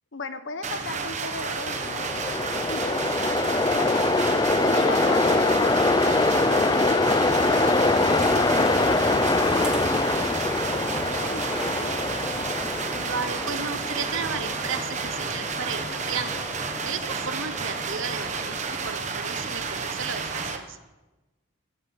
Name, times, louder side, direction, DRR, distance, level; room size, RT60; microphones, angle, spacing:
voice 1, 0.1-4.1 4.6-7.0 7.4-12.0, left 3 dB, 65° left, 10 dB, 1.0 m, -38 dB
sound 1, 0.6-20.6, right 4 dB, 35° right, 1.0 m, -31 dB
Train, 1.4-18.6, left 2 dB, 20° left, 0.5 m, -24 dB
sound 2, 8.2-13.3, equal, 5° right, 1.0 m, -38 dB
voice 2, 12.9-16.4 16.8-20.8, right 6 dB, 70° right, 11 dB, 0.9 m, -34 dB
14.0 x 8.0 x 7.7 m, 1.1 s
head